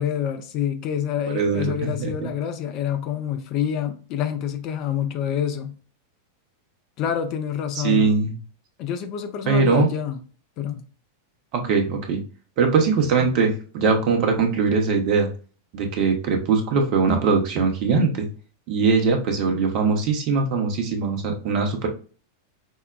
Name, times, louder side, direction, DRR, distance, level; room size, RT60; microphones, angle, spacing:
voice 1, 0.0-5.8 7.0-8.1 8.8-10.2 10.6-10.8, left 9 dB, 40° left, 0.5 m, -27 dB
voice 2, 1.3-2.3 7.7-8.3 9.5-9.9 11.5-12.2 12.6-15.3 15.7-18.3 18.7-21.9, right 4 dB, 40° right, 0.9 m, -21 dB
5.4 x 2.2 x 2.2 m
figure-of-eight pair, 90°, 0 cm